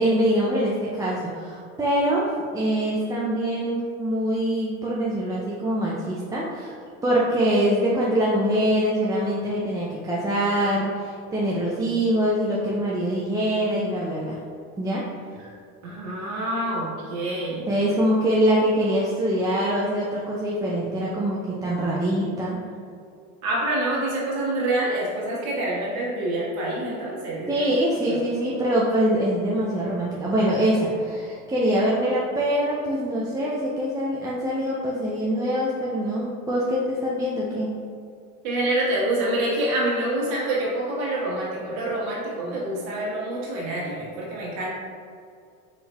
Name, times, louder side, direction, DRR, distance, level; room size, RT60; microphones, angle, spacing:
voice 1, 0.0-6.7 7.0-14.4 14.8-15.0 17.7-22.6 27.5-37.7 42.4-42.5, equal, 10° right, -5 dB, 0.4 m, -24 dB
voice 2, 15.4-17.7 23.4-27.7 28.1-28.2 38.4-44.7, right 1 dB, 65° right, -6 dB, 1.4 m, -27 dB
4.2 x 3.8 x 2.2 m, 2.3 s
hypercardioid pair, 80°, 42 cm